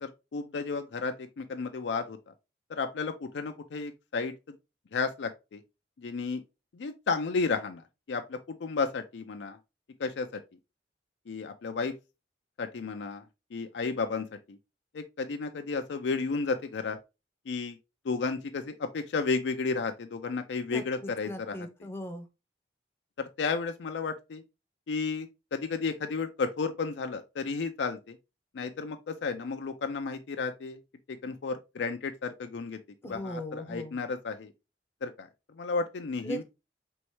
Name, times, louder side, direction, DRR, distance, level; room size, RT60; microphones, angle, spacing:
voice 1, 0.0-2.3 2.7-4.3 4.9-5.6 6.0-6.4 6.7-7.8 8.1-9.6 10.0-10.4 11.3-11.9 12.6-13.2 13.5-14.6 14.9-17.0 17.5-17.8 18.0-21.6 23.2-24.4 24.9-28.2 28.5-30.8 31.2-34.5 35.0-35.3 35.6-36.4, left 4 dB, 80° left, 0.4 m, -33 dB
voice 2, 20.7-22.3 33.0-34.0 36.2-36.4, equal, 15° left, 0.6 m, -39 dB
4.5 x 3.1 x 3.0 m
head